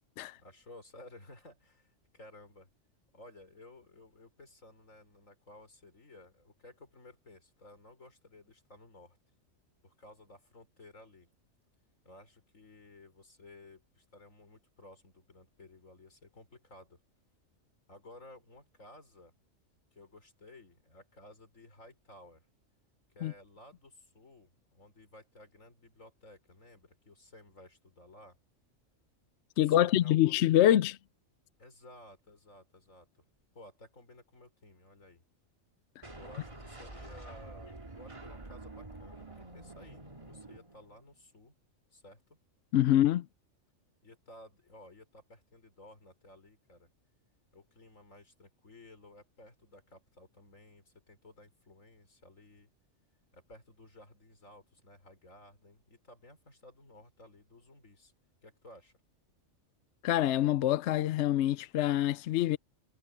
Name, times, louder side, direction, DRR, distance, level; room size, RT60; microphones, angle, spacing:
voice 1, 0.4-2.7 3.1-9.2 9.8-11.3 12.0-17.0 17.9-19.3 19.9-22.5 23.1-28.4 29.6-30.4 31.6-33.2 33.5-35.2 36.2-41.6 41.9-42.4 44.0-46.9 47.5-52.7 53.3-58.1 58.4-58.9, left 2 dB, 90° left, 5.4 m, -55 dB
voice 2, 29.6-31.0 42.7-43.2 60.0-62.6, left 12 dB, 70° left, 0.8 m, -25 dB
sound 1, 36.0-41.2, right 2 dB, 25° right, 2.2 m, -48 dB
omnidirectional pair, 1.3 m